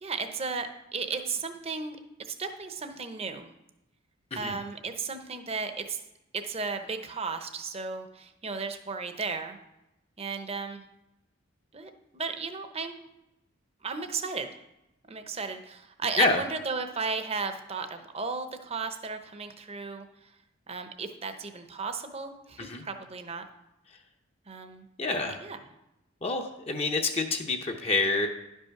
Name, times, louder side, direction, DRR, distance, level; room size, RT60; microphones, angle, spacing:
voice 1, 0.0-3.5 4.4-6.0 6.3-9.6 10.2-10.8 11.7-13.0 13.8-14.6 15.1-20.3 20.7-23.4 24.5-24.9 25.3-25.6, right 4 dB, 30° right, 7 dB, 0.7 m, -35 dB
voice 2, 25.0-25.4 26.2-28.3, left 3 dB, 30° left, 3 dB, 0.6 m, -27 dB
11.0 x 5.5 x 5.8 m, 0.91 s
head